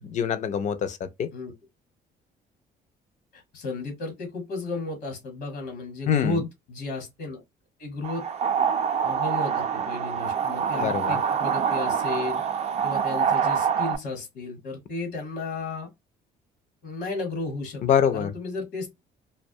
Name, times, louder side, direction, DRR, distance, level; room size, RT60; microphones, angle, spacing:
voice 1, 0.0-1.3 6.1-6.3 10.8-11.2 17.8-18.3, left 8 dB, 45° left, 0.4 m, -24 dB
voice 2, 3.3-7.4 7.8-8.2 9.0-12.4 12.8-15.9 16.8-19.0, left 3 dB, 75° left, 1.0 m, -33 dB
sound 1, 8.0-14.0, right 7 dB, 40° right, 0.4 m, -25 dB
2.2 x 2.1 x 2.6 m
cardioid pair, 110°, 17 cm